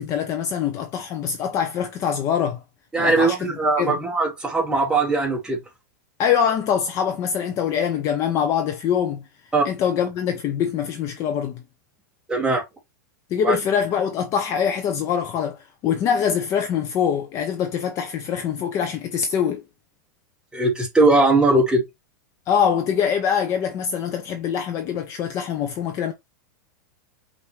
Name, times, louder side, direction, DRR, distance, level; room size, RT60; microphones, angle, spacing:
voice 1, 0.0-2.6 3.0-4.0 6.2-9.2 9.6-11.6 13.3-19.6 22.5-26.1, left 8 dB, 30° left, 0.6 m, -24 dB
voice 2, 2.9-5.6 9.5-9.6 12.3-12.6 13.4-13.6 20.5-21.8, right 2 dB, 5° right, 1.6 m, -19 dB
5.6 x 2.6 x 3.2 m
supercardioid pair, 155°, 10 cm